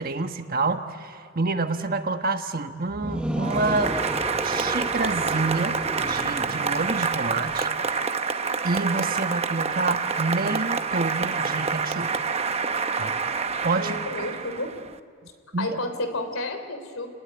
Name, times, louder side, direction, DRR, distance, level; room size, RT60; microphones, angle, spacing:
voice 1, 0.0-4.0 4.4-7.7 8.6-12.2 13.0-13.1 13.6-14.0 15.5-15.7, right 3 dB, 45° right, 7 dB, 1.3 m, -28 dB
Monster Screaming in a Cave, 2.9-7.9, equal, 5° right, 1.0 m, -33 dB
Applause, 3.4-14.9, right 5 dB, 30° right, 0.9 m, -27 dB
voice 2, 13.7-14.7 15.6-17.1, left 2 dB, 90° left, 7 dB, 3.2 m, -31 dB
30.0 x 20.0 x 9.6 m, 2.1 s
head